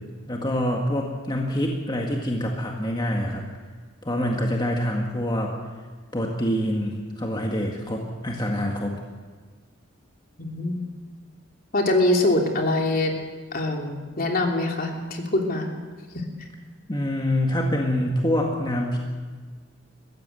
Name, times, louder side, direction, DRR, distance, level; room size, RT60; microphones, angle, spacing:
voice 1, 0.3-3.4 4.0-5.5 6.1-8.9 16.9-19.0, equal, 20° left, 0 dB, 1.9 m, -25 dB
voice 2, 10.4-10.8 11.7-13.1 13.5-15.7, left 2 dB, 45° left, 2 dB, 3.0 m, -23 dB
22.0 x 16.0 x 7.8 m, 1.5 s
head